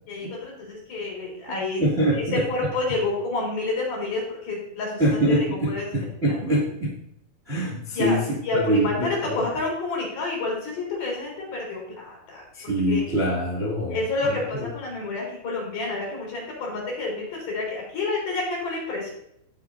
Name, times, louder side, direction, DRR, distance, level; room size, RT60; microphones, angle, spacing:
voice 1, 0.1-1.8 2.1-6.7 7.9-13.0 13.9-19.1, left 3 dB, 50° left, -3 dB, 5.3 m, -29 dB
voice 2, 1.8-2.4 5.0-6.9 7.4-8.2 8.5-9.4 12.5-14.0, right 1 dB, 25° right, -6 dB, 1.4 m, -24 dB
17.0 x 7.1 x 2.7 m, 0.76 s
omnidirectional pair, 5.7 m